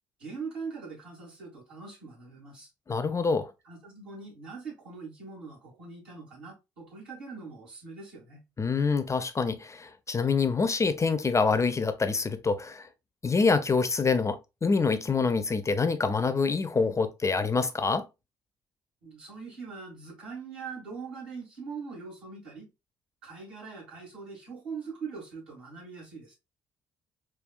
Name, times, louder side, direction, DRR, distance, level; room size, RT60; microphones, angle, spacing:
voice 1, 0.2-2.7 3.6-8.4 19.0-22.7 23.2-26.3, right 5 dB, 75° right, 2.2 m, -42 dB
voice 2, 2.9-3.5 8.6-12.9 13.2-18.0, left 4 dB, 25° left, 0.5 m, -26 dB
5.1 x 2.3 x 2.3 m
figure-of-eight pair, 45°, 12 cm